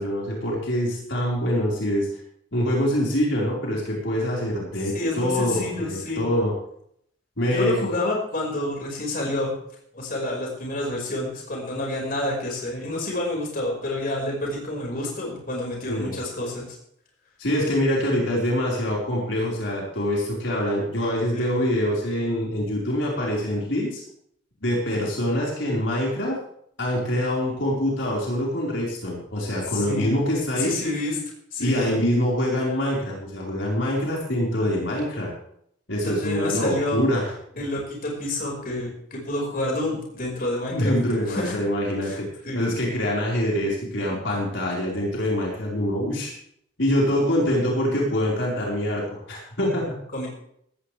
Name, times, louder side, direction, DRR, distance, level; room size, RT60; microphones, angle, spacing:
voice 1, 0.0-2.1 2.5-6.5 7.4-7.8 15.9-16.2 17.4-24.0 24.6-26.3 26.8-30.7 31.6-35.3 35.9-37.3 40.7-42.3 42.5-46.3 46.8-49.9, equal, 75° left, -3 dB, 4.8 m, -25 dB
voice 2, 4.9-6.2 7.5-9.5 9.9-16.7 21.3-21.5 29.7-30.1 30.5-31.2 31.5-32.0 36.0-37.1 37.6-40.9 41.3-41.6 42.0-42.6 50.1-50.3, left 1 dB, 50° left, -1 dB, 5.3 m, -28 dB
17.5 x 14.0 x 3.4 m, 0.69 s
head